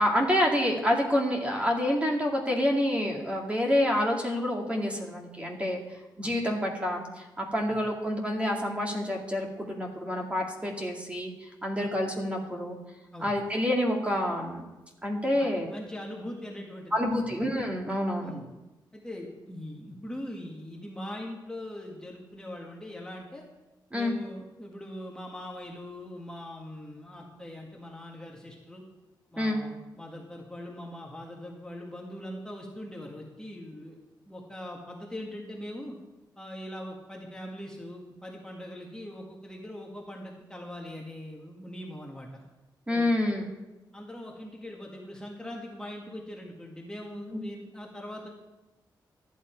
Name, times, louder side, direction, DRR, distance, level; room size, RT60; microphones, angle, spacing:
voice 1, 0.0-5.8 6.2-12.8 13.2-14.6 15.0-15.7 16.9-18.3 23.9-24.1 29.4-29.6 42.9-43.5 47.3-47.4, left 1 dB, 15° right, 0 dB, 2.2 m, -28 dB
voice 2, 15.3-17.3 18.2-18.5 18.9-23.4 23.9-28.8 29.3-34.0 34.3-36.0 36.4-42.4 42.9-43.2 43.9-48.3, left 1 dB, 10° left, -2 dB, 1.8 m, -41 dB
14.0 x 9.4 x 4.6 m, 1.0 s
cardioid pair, 95°, 8 cm